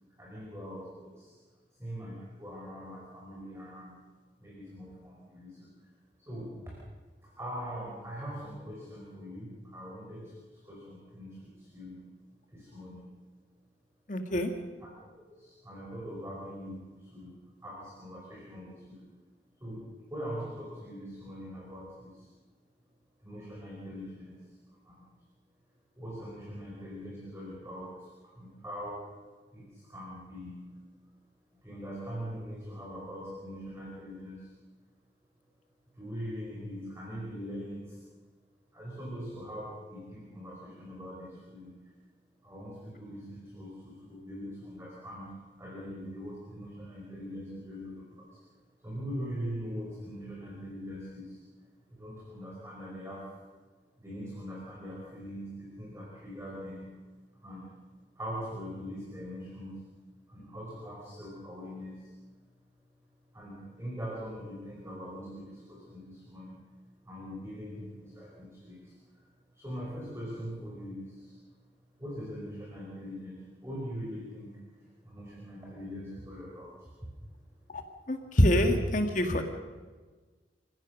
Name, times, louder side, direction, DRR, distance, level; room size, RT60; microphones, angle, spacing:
voice 1, 0.2-1.4 1.8-4.0 4.4-5.7 6.2-6.6 7.2-12.0 12.5-13.1 15.0-19.0 19.6-22.3 23.2-24.4 24.8-25.1 26.0-29.2 29.5-30.7 31.6-34.5 35.9-38.0 38.7-41.8 42.4-45.3 45.6-48.4 48.8-51.4 51.9-53.4 54.0-56.9 57.4-57.7 58.1-59.8 60.3-62.1 63.3-66.6 67.0-69.2 69.5-71.4 72.0-77.1, equal, 15° right, -4 dB, 4.9 m, -42 dB
voice 2, 14.1-14.5 77.7-77.8 78.1-79.4, equal, 45° left, 5 dB, 1.9 m, -25 dB
27.5 x 15.5 x 6.4 m, 1.4 s
head